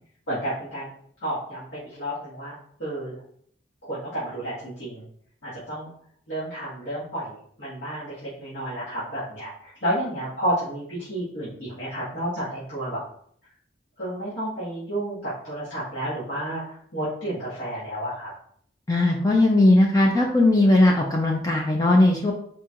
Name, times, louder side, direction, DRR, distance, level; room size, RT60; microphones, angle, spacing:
voice 1, 0.3-0.9 1.2-2.5 2.8-3.2 3.8-5.0 5.4-5.9 6.3-13.0 14.0-18.3, right 1 dB, 70° left, -11 dB, 1.8 m, -31 dB
voice 2, 18.9-22.3, left 2 dB, 20° left, 0 dB, 0.5 m, -18 dB
4.7 x 4.3 x 2.5 m, 0.64 s
head